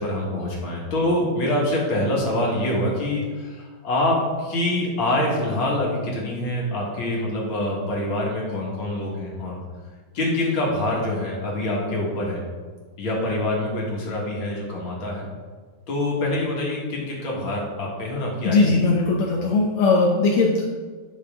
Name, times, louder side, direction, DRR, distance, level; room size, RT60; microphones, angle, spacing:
voice 1, 0.0-9.6 10.1-12.4 13.0-15.3 15.9-18.6 18.9-19.0 19.2-19.3, left 1 dB, 65° left, -3 dB, 2.7 m, -25 dB
voice 2, 18.4-20.6, left 3 dB, 85° left, -2 dB, 1.9 m, -19 dB
10.5 x 6.2 x 3.7 m, 1.5 s
omnidirectional pair, 2.3 m